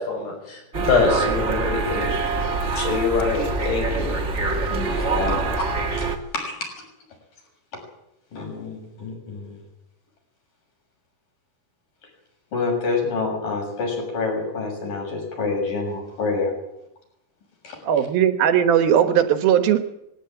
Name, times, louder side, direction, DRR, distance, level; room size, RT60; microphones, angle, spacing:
voice 1, 0.0-2.1 2.8-4.1, left 4 dB, 85° left, 1 dB, 8.9 m, -24 dB
sound 1, 0.7-6.2, right 3 dB, 45° right, 0.9 m, -25 dB
voice 2, 4.5-5.7 6.0-6.1 6.3-6.8 7.7-7.8 8.3-9.6 12.5-16.5 17.6-17.8, left 3 dB, 55° left, 1 dB, 8.2 m, -27 dB
voice 3, 17.8-19.8, right 9 dB, 70° right, 9 dB, 2.9 m, -18 dB
20.5 x 16.5 x 8.8 m, 0.82 s
omnidirectional pair, 4.6 m